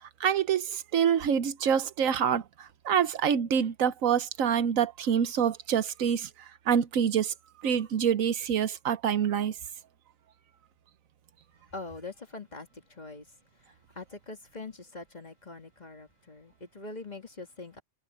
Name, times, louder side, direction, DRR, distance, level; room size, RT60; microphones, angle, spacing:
voice 1, 0.2-6.3 6.7-7.3 7.6-9.6, right 8 dB, 80° right, 1.3 m, -26 dB
voice 2, 11.7-13.3 13.6-17.8, left 3 dB, 30° left, 2.1 m, -43 dB
omnidirectional pair, 1.4 m